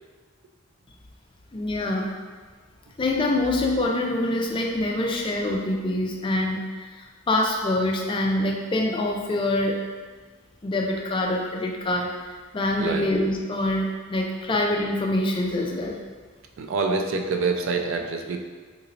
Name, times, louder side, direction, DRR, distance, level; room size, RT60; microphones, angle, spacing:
voice 1, 1.5-2.1 3.0-6.9 7.3-9.8 10.6-16.0, left 1 dB, 25° left, 0 dB, 0.3 m, -25 dB
voice 2, 16.6-18.4, right 4 dB, 65° right, 3 dB, 0.3 m, -26 dB
2.9 x 2.6 x 4.0 m, 1.5 s
head